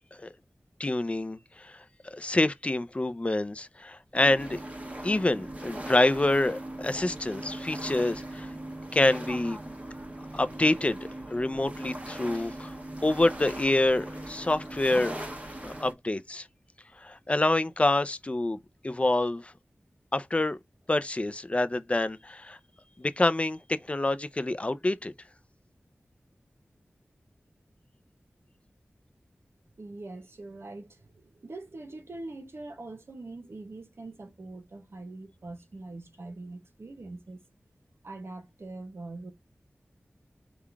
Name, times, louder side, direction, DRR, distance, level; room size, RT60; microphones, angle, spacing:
voice 1, 0.8-4.6 5.0-8.5 8.9-9.6 10.3-15.2 15.6-16.5 17.0-18.6 18.8-19.5 20.1-20.6 20.9-22.6 23.0-25.1, left 2 dB, 25° left, 0.5 m, -27 dB
sound 1, 4.1-15.9, right 1 dB, 30° right, 1.2 m, -39 dB
voice 2, 29.8-37.4 38.0-39.3, right 2 dB, 65° right, 1.0 m, -43 dB
3.8 x 2.4 x 4.5 m
wide cardioid pair, 70°, 4 cm